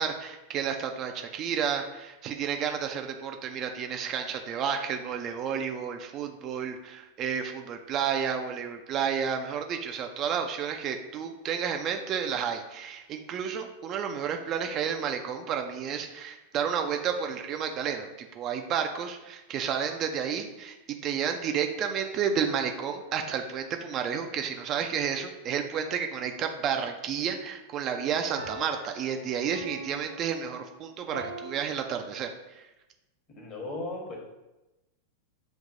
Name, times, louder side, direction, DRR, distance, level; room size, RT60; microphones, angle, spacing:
voice 1, 0.0-20.8 21.0-32.3 32.5-32.7, right 7 dB, 35° right, 4 dB, 0.4 m, -31 dB
sound 1, 22.9-23.9 28.4-31.5, right 1 dB, 90° left, 0.6 m, -44 dB
voice 2, 33.3-34.2, left 2 dB, 35° left, 1 dB, 1.2 m, -36 dB
6.9 x 2.6 x 2.5 m, 1.0 s
figure-of-eight pair, 90°, 0 cm